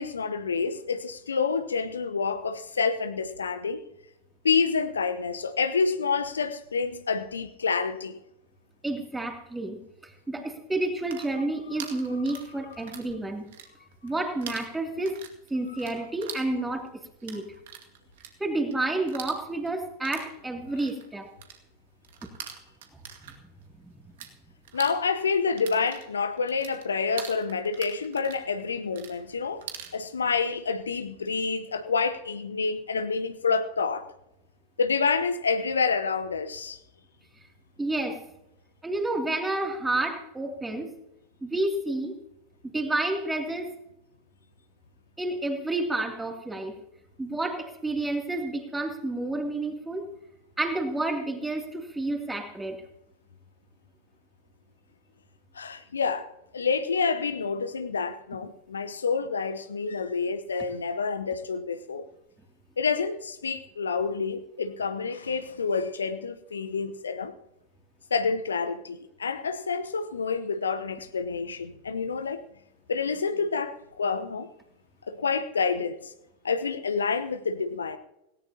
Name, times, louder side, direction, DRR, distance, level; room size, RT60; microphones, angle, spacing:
voice 1, 0.0-3.8 4.4-8.2 24.7-29.6 29.9-34.1 34.8-36.8 55.5-56.3 56.5-62.1 62.8-67.3 68.1-72.4 72.9-74.5 75.1-76.1 76.4-78.0, left 5 dB, 70° left, 0.9 m, -28 dB
voice 2, 8.8-13.5 14.0-15.2 15.5-16.9 17.2-17.5 18.4-21.3 23.2-23.5 23.8-23.9 37.8-38.2 38.8-40.9 41.4-42.2 42.7-43.7 45.2-46.8 47.2-50.1 50.6-52.8, right 2 dB, 10° right, 2.8 m, -30 dB
sound 1, 10.9-13.1 13.4-14.1 14.4-24.3 24.6-30.0, right 9 dB, 55° right, 2.2 m, -43 dB
18.0 x 17.5 x 2.9 m
figure-of-eight pair, 90°, 0 cm